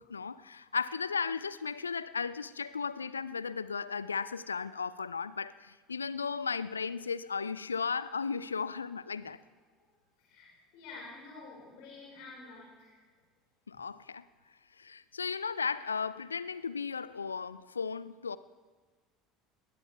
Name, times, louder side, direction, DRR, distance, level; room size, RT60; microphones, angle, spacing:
voice 1, 0.0-9.4 13.7-14.2 14.8-18.4, left 5 dB, 85° left, 0.4 m, -35 dB
voice 2, 10.2-12.9, left 3 dB, 60° left, 5.4 m, -49 dB
20.5 x 19.0 x 3.5 m
figure-of-eight pair, 65°, 0 cm